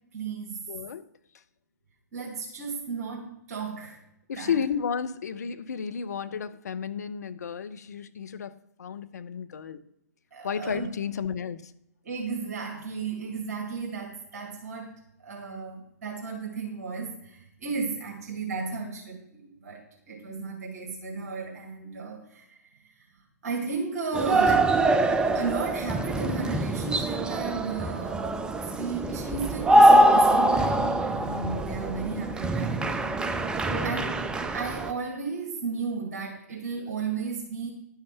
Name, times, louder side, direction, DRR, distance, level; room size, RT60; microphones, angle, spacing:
voice 1, 0.1-0.7 2.1-4.0 4.4-4.5 10.3-10.9 12.0-14.9 15.2-22.9 23.4-24.8 25.3-28.3 28.6-34.1 34.5-37.7, right 4 dB, 55° right, 0 dB, 2.2 m, -34 dB
voice 2, 0.7-1.1 4.3-9.8 10.4-11.7 33.7-34.0, left 7 dB, 65° left, 12 dB, 0.7 m, -32 dB
sound 1, 24.1-34.9, right 1 dB, 10° right, 0.5 m, -23 dB
11.5 x 5.7 x 5.8 m, 0.81 s
figure-of-eight pair, 120°, 9 cm